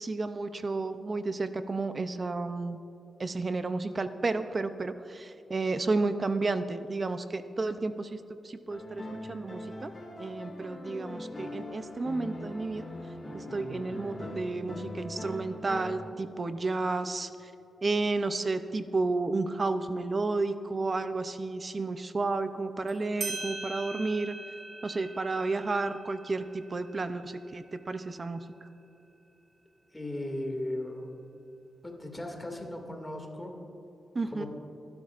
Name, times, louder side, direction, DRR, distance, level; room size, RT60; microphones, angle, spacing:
voice 1, 0.0-2.8 3.2-8.2 8.4-9.9 10.2-12.9 13.3-17.3 17.8-24.4 24.8-28.4 34.1-34.4, right 3 dB, 35° right, 10 dB, 0.5 m, -32 dB
sound 1, 8.7-15.9, left 1 dB, 30° left, 3.0 m, -41 dB
sound 2, 22.9-23.0 23.2-28.3, right 3 dB, 55° right, 2.3 m, -42 dB
voice 2, 29.9-31.1 31.8-33.5 34.2-34.5, left 1 dB, 15° left, 1 dB, 2.2 m, -37 dB
25.5 x 11.5 x 2.5 m, 2.9 s
wide cardioid pair, 110°, 0 cm